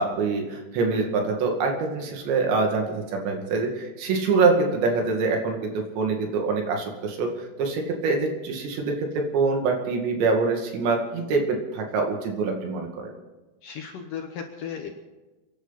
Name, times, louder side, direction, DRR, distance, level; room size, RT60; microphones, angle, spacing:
voice 1, 0.0-7.3 7.6-13.1, right 4 dB, 80° right, 2 dB, 4.5 m, -25 dB
voice 2, 13.6-14.9, left 7 dB, 65° left, 4 dB, 2.2 m, -35 dB
30.0 x 11.0 x 4.2 m, 1.2 s
omnidirectional pair, 5.1 m